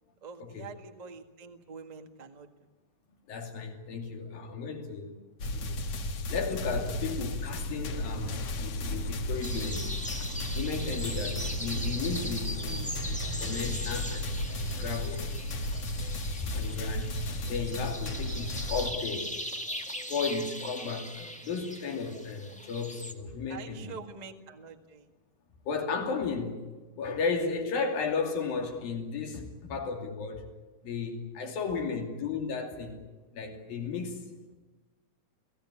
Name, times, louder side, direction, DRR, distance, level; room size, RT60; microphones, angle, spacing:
voice 1, 0.2-2.5 23.5-25.1 31.4-31.9, right 5 dB, 65° right, 0.4 m, -46 dB
voice 2, 3.3-5.2 5.5-5.8 6.3-9.9 10.5-15.3 16.4-17.2 17.5-19.3 20.1-24.0 25.6-26.6 27.0-30.5 30.8-33.0 33.3-34.3, left 5 dB, 90° left, 4.5 m, -34 dB
sound 1, 5.4-18.9, left 1 dB, 55° left, 1.9 m, -34 dB
sound 2, 9.0-18.7, right 7 dB, 80° right, 1.1 m, -48 dB
sound 3, 9.4-23.1, equal, 5° left, 0.5 m, -40 dB
29.0 x 17.0 x 9.9 m
omnidirectional pair, 4.0 m